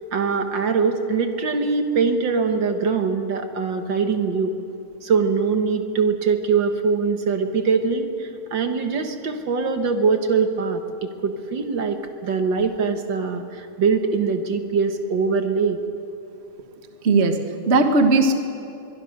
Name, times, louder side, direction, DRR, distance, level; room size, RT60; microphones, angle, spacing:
voice 1, 0.1-4.5 5.0-15.8, right 5 dB, 55° right, 6 dB, 1.4 m, -22 dB
voice 2, 17.0-18.3, right 3 dB, 80° right, 6 dB, 0.5 m, -18 dB
23.5 x 22.5 x 6.6 m, 2.8 s
omnidirectional pair, 3.6 m